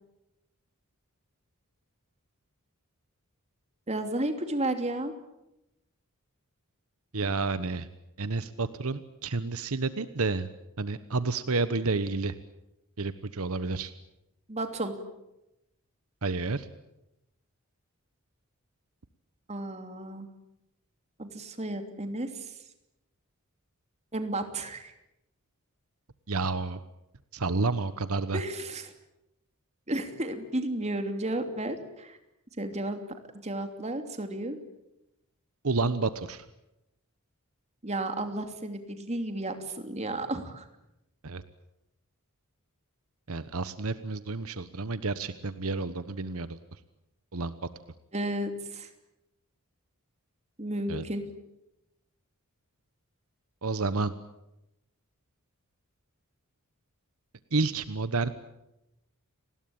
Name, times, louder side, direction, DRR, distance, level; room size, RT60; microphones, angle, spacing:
voice 1, 3.9-5.1 14.5-14.9 19.5-20.3 21.2-22.5 24.1-24.9 28.3-28.9 29.9-32.2 32.6-33.0 33.4-34.6 37.8-40.6 48.1-48.9 50.6-51.3, right 1 dB, 30° right, 7 dB, 2.9 m, -33 dB
voice 2, 7.1-7.9 8.2-10.5 10.8-12.3 13.0-13.9 16.2-16.7 26.3-26.8 27.3-28.4 35.6-36.4 41.2-41.4 43.3-46.6 47.3-47.6 50.9-51.0 53.6-54.1 57.5-58.3, right 3 dB, 75° right, 13 dB, 1.1 m, -30 dB
30.0 x 20.5 x 8.8 m, 0.90 s
head